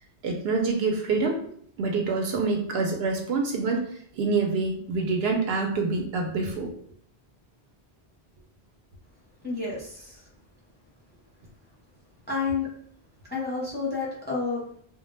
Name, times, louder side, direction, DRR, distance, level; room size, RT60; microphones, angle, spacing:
voice 1, 0.2-1.4 1.8-6.7, right 4 dB, 75° right, 2 dB, 0.8 m, -26 dB
voice 2, 9.4-10.3 12.3-12.7 13.3-14.6, left 4 dB, 10° left, -5 dB, 0.5 m, -30 dB
2.2 x 2.1 x 3.0 m, 0.62 s
omnidirectional pair, 1.1 m